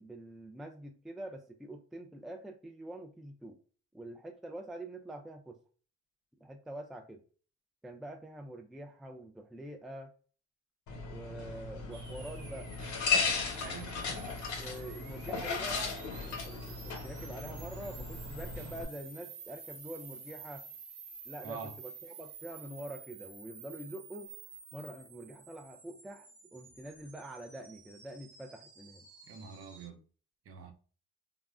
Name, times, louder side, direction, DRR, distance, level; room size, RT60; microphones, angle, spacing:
voice 1, 0.0-3.6 3.9-5.6 6.4-7.2 7.8-10.1 11.1-12.7 14.5-20.7 21.3-24.3 24.7-29.1, right 1 dB, ahead, 0.3 m, -45 dB
sound 1, 10.9-18.8, left 5 dB, 70° left, 1.0 m, -36 dB
sound 2, 11.9-29.9, right 5 dB, 85° right, 0.8 m, -51 dB
voice 2, 13.5-14.4 21.4-21.7 29.3-30.0 30.5-30.7, right 6 dB, 50° right, 0.6 m, -46 dB
3.5 x 2.1 x 2.3 m
cardioid pair, 90°, 30 cm